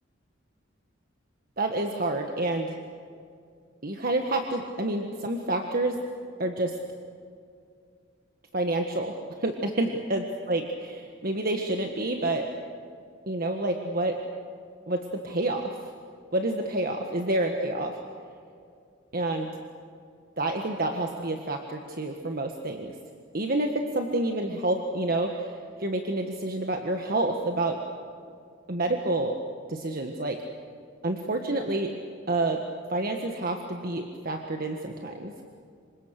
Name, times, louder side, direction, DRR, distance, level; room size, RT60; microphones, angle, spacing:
voice 1, 1.6-2.8 3.8-6.0 6.4-6.8 8.5-9.1 9.4-12.5 13.3-14.2 14.9-15.8 16.3-17.9 19.1-19.5 20.4-22.9 23.3-25.5 25.8-27.8 28.7-29.3 29.7-30.4 31.0-31.9 32.3-32.6 32.9-35.4, right 2 dB, 50° right, 3 dB, 1.5 m, -28 dB
27.0 x 25.0 x 6.7 m, 2.3 s
head